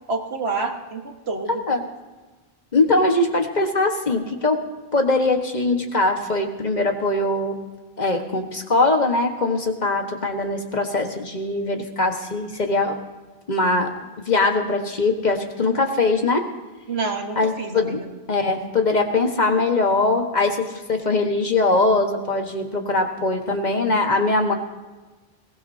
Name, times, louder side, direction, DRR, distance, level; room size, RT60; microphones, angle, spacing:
voice 1, 0.1-1.5 16.9-18.1, right 3 dB, 85° right, 4 dB, 1.7 m, -28 dB
voice 2, 1.5-1.8 2.7-4.6 4.9-7.6 8.0-13.0 13.5-13.9 14.2-16.5 17.4-18.0 18.3-24.5, left 2 dB, 45° left, 4 dB, 1.4 m, -21 dB
21.5 x 18.0 x 2.7 m, 1.3 s
omnidirectional pair, 1.0 m